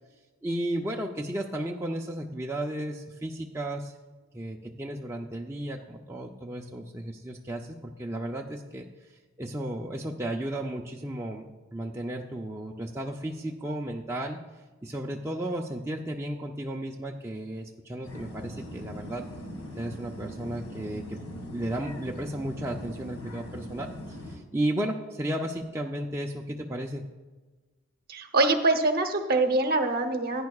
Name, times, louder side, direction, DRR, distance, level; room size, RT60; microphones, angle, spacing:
voice 1, 0.4-4.0 4.3-8.8 9.4-11.5 11.7-14.4 14.8-19.3 19.7-21.1 21.5-27.0, right 1 dB, 10° right, -1 dB, 0.5 m, -34 dB
sound 1, 18.0-24.4, left 1 dB, 75° left, 1.9 m, -41 dB
voice 2, 28.1-30.5, right 2 dB, 45° right, 7 dB, 0.9 m, -24 dB
15.0 x 9.4 x 2.4 m, 1.2 s
head